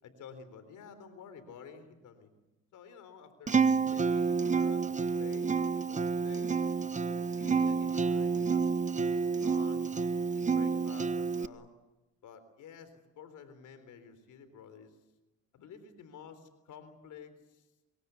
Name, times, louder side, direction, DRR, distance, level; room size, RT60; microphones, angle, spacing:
voice 1, 0.0-2.3 2.7-6.6 7.1-8.6 9.1-9.9 10.3-11.7 12.2-15.0 15.5-17.7, left 6 dB, 80° left, 11 dB, 3.9 m, -51 dB
Acoustic guitar, 3.5-11.5, right 5 dB, 25° right, 0.9 m, -29 dB
25.0 x 22.5 x 8.3 m, 1.1 s
cardioid pair, 90°, 30 cm